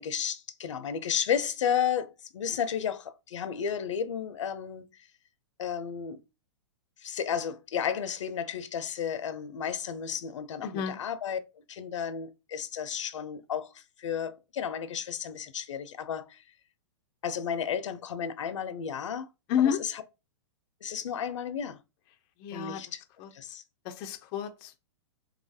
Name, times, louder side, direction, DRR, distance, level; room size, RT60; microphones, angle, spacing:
voice 1, 0.0-4.9 5.6-6.2 7.0-11.4 11.7-16.4 17.2-19.3 19.6-20.0 20.8-21.8 22.5-23.0 23.3-23.6, left 8 dB, 90° left, 0.4 m, -33 dB
voice 2, 10.6-11.0 19.5-19.8 22.4-22.8 23.2-23.3 23.9-24.8, left 9 dB, 30° left, 0.3 m, -30 dB
2.8 x 2.3 x 2.6 m
hypercardioid pair, 140°, 15 cm